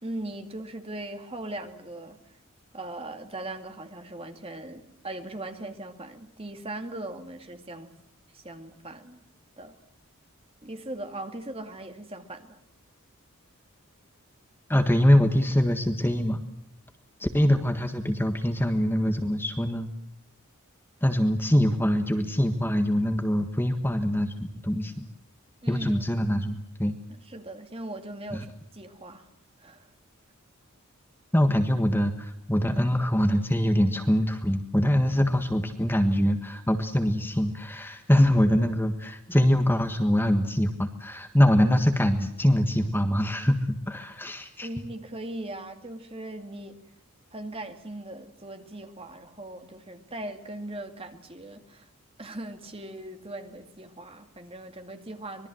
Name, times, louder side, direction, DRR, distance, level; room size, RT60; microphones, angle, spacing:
voice 1, 0.0-2.2 2.7-7.9 8.3-9.2 9.6-9.7 10.6-12.6 25.6-26.1 27.1-29.3 29.6-29.9 44.6-46.8 47.3-51.9 52.2-55.5, right 1 dB, 25° right, 6 dB, 2.3 m, -39 dB
voice 2, 14.7-16.4 17.2-19.9 21.0-24.3 24.6-25.1 25.7-26.9 28.3-28.4 31.3-44.7, equal, 10° left, 7 dB, 1.5 m, -23 dB
25.5 x 21.5 x 7.8 m, 0.75 s
head